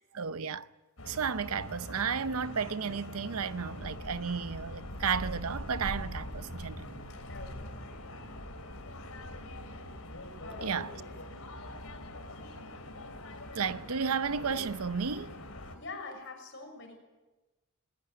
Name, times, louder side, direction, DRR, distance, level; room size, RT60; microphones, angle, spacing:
voice 1, 0.1-0.7 1.0-6.9 10.6-11.0 13.5-15.4, right 6 dB, 85° right, 0.8 m, -33 dB
sound 1, 1.0-15.8, left 1 dB, 80° left, 3.5 m, -43 dB
voice 2, 7.3-8.2 10.4-10.8 15.7-17.0, left 3 dB, 55° left, 6.5 m, -45 dB
20.0 x 19.0 x 9.5 m
head